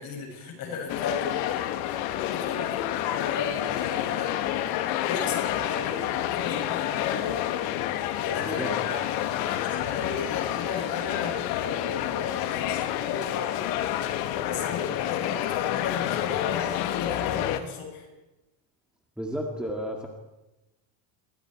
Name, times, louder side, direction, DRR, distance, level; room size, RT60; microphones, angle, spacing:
voice 1, 0.0-1.4 2.2-4.3 5.0-7.4 8.1-9.0 9.4-13.6 14.3-18.1, left 5 dB, 45° left, 1 dB, 7.6 m, -35 dB
sound 1, 0.9-17.6, left 12 dB, 80° left, 2.1 m, -29 dB
voice 2, 8.4-8.7 19.2-20.1, equal, ahead, 0 dB, 2.0 m, -32 dB
28.5 x 23.5 x 4.7 m, 1.0 s
cardioid pair, 165°, 49 cm